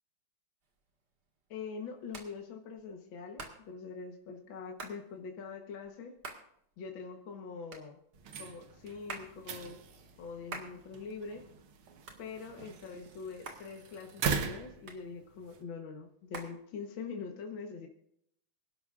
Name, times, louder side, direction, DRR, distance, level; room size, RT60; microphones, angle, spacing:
Hands, 0.6-17.3, right 3 dB, 50° right, 2.4 m, -51 dB
voice 1, 1.5-6.2 6.8-8.0 8.4-9.8 10.2-11.4 12.2-17.9, left 5 dB, 65° left, 2 dB, 1.9 m, -43 dB
sound 1, 8.1-15.6, right 6 dB, 75° right, 2.0 m, -41 dB
25.5 x 11.5 x 2.5 m, 0.71 s
omnidirectional pair, 2.4 m